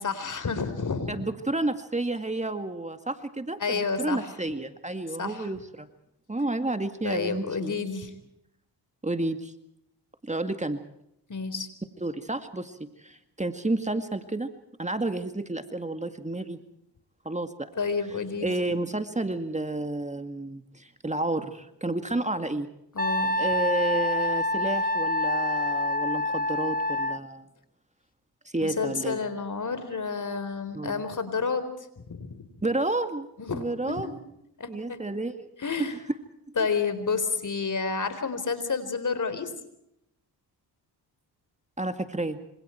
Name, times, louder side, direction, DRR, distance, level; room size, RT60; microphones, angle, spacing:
voice 1, 0.0-1.1 3.6-4.3 5.2-5.5 7.0-8.1 11.3-11.7 17.8-18.5 22.9-23.3 28.6-31.6 32.1-32.4 33.4-34.1 34.6-35.0 35.6-35.9 36.6-39.5, left 5 dB, 45° left, 12 dB, 4.1 m, -30 dB
voice 2, 1.1-5.9 6.3-7.8 9.0-9.5 10.2-10.8 12.0-14.5 14.8-16.6 17.3-17.7 18.4-22.7 23.4-27.5 28.5-29.2 30.7-31.0 32.6-33.3 33.5-34.1 34.7-35.5 35.8-36.0 41.8-42.4, right 2 dB, 15° right, 8 dB, 2.1 m, -30 dB
Wind instrument woodwind instrument, 23.0-27.2, left 1 dB, 20° left, 1.2 m, -27 dB
26.5 x 26.5 x 4.5 m, 0.79 s
cardioid pair, 65°, 41 cm